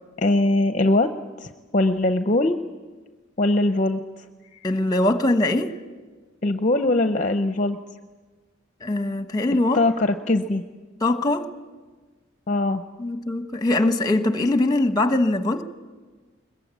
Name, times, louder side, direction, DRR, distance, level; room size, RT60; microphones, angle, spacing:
voice 1, 0.2-1.1 1.4-2.6 3.4-4.0 6.4-7.8 9.7-10.6 12.5-12.8, left 2 dB, 35° left, 0.7 m, -21 dB
voice 2, 4.6-5.7 8.8-9.8 11.0-11.5 13.0-15.6, left 2 dB, 20° left, 1.1 m, -22 dB
22.0 x 21.0 x 8.3 m
head